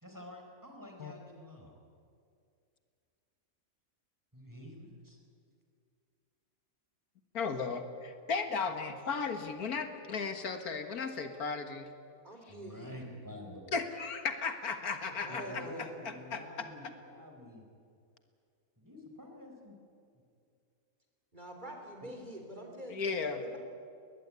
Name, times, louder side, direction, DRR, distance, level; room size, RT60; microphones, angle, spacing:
voice 1, 0.0-1.7 4.3-5.2 12.5-13.6 15.3-17.6 18.8-19.8, left 1 dB, 10° right, 2 dB, 4.2 m, -48 dB
voice 2, 7.3-11.9 13.7-15.6 16.0-16.4 22.9-23.4, left 5 dB, 85° left, 7 dB, 2.1 m, -35 dB
voice 3, 12.2-12.9 15.2-16.0 21.3-23.6, equal, 30° right, 3 dB, 3.8 m, -46 dB
21.5 x 19.5 x 9.7 m, 2.4 s
omnidirectional pair, 1.6 m